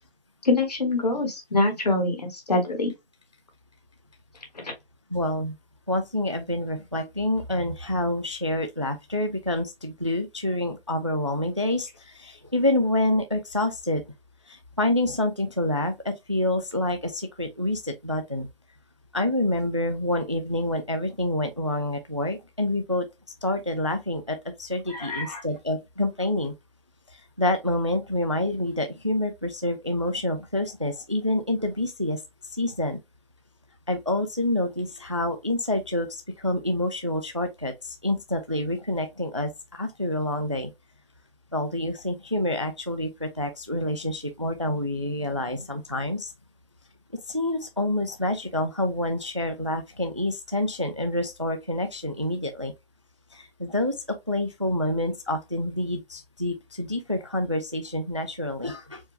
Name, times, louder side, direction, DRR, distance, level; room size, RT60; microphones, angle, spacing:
voice 1, 0.4-2.9 4.6-4.7 24.9-25.4, left 2 dB, 40° left, 1.4 m, -25 dB
voice 2, 5.1-5.6 5.9-14.0 14.5-18.5 19.1-23.1 23.4-26.5 27.1-32.2 32.5-33.0 33.9-40.7 41.5-46.3 47.3-52.7 53.3-59.0, left 1 dB, 30° right, 0.4 m, -27 dB
4.5 x 2.6 x 3.3 m
figure-of-eight pair, 170°, 30 cm